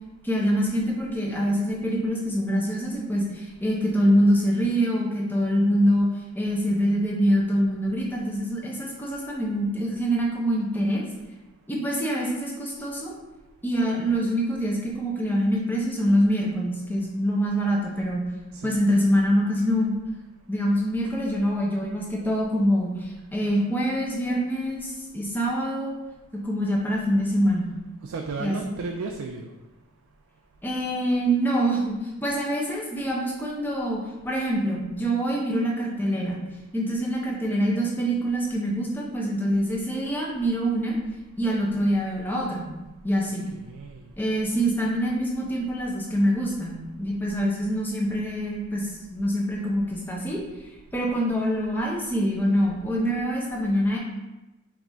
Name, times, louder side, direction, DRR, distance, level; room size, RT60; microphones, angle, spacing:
voice 1, 0.2-6.1 6.3-11.0 11.7-13.1 13.6-18.2 18.6-19.9 20.5-26.0 26.4-27.7 28.4-28.7 30.6-32.0 32.2-36.4 36.7-41.0 41.4-42.7 43.0-43.5 44.2-50.4 50.9-54.0, equal, 10° left, -3 dB, 0.7 m, -25 dB
voice 2, 28.0-29.5 43.5-44.0, right 4 dB, 80° right, 2 dB, 0.4 m, -34 dB
4.8 x 3.5 x 2.7 m, 1.1 s
head